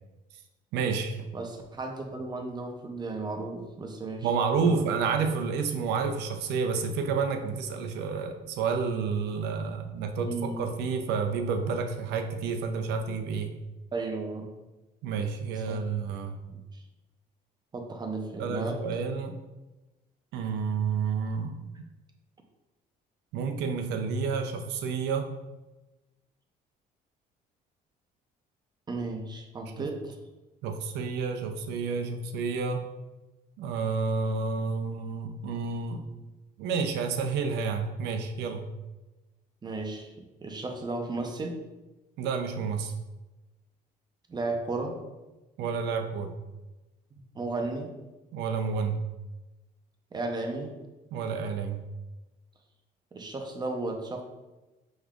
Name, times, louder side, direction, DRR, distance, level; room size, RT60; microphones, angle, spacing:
voice 1, 0.7-1.3 4.2-13.5 15.0-16.4 18.4-19.3 20.3-21.7 23.3-25.3 29.8-29.9 30.6-32.9 33.6-36.0 36.6-38.7 42.2-42.9 45.6-46.3 48.3-49.0 51.1-51.8, right 5 dB, 85° right, 6 dB, 0.6 m, -30 dB
voice 2, 1.3-4.3 4.6-4.8 10.2-10.7 13.9-14.5 15.7-15.8 16.5-16.8 17.7-18.8 28.9-30.2 39.6-41.6 44.3-45.0 47.3-47.9 50.1-50.7 53.1-54.2, right 3 dB, 25° right, 3 dB, 0.7 m, -34 dB
5.2 x 3.6 x 2.4 m, 1.1 s
cardioid pair, 110°, 17 cm